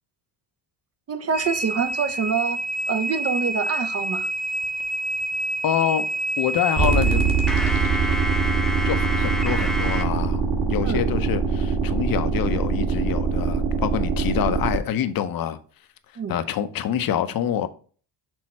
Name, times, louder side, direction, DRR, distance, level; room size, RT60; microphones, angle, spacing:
voice 1, 1.1-2.6 2.9-4.3 10.8-11.0 16.2-16.3, right 6 dB, 35° right, 0.7 m, -26 dB
sound 1, 1.3-10.0, right 1 dB, ahead, 0.5 m, -28 dB
voice 2, 5.6-6.1 6.4-7.3 8.1-8.2 8.8-15.6 16.3-17.7, left 10 dB, 55° left, 0.8 m, -26 dB
sound 2, 6.8-14.8, right 5 dB, 55° right, 2.0 m, -23 dB
6.3 x 3.7 x 4.2 m
cardioid pair, 105°, 43 cm